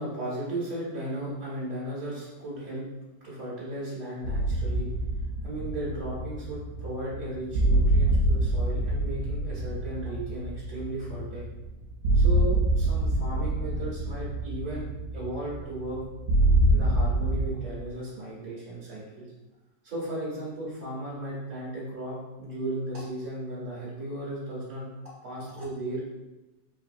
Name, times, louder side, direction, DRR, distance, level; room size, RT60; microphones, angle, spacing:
voice 1, 0.0-2.8 3.2-4.9 5.4-11.4 12.1-14.9 15.1-16.0 16.7-19.2 19.8-24.9 25.2-26.2, right 1 dB, 50° right, -11 dB, 2.0 m, -35 dB
sound 1, 4.2-17.5, right 1 dB, 70° right, 0.8 m, -26 dB
4.8 x 3.6 x 2.6 m, 1.1 s
omnidirectional pair, 2.0 m